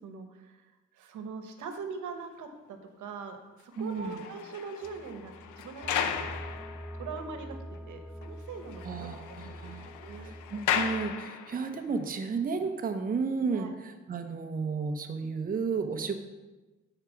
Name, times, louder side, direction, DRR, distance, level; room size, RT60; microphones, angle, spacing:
voice 1, 0.0-6.3 6.9-10.3 13.5-13.7, right 5 dB, 75° right, 7 dB, 1.1 m, -42 dB
sound 1, 3.7-7.4 7.7-7.8 8.2-8.3 8.6-11.8 12.5-12.7, left 8 dB, 80° left, 0.7 m, -36 dB
voice 2, 3.8-4.2 8.8-9.9 10.2-16.1, right 5 dB, 30° right, 5 dB, 0.8 m, -33 dB
sound 2, 4.8-11.2, equal, 5° right, 0.3 m, -45 dB
8.9 x 4.8 x 5.7 m, 1.2 s
cardioid pair, 90°, 30 cm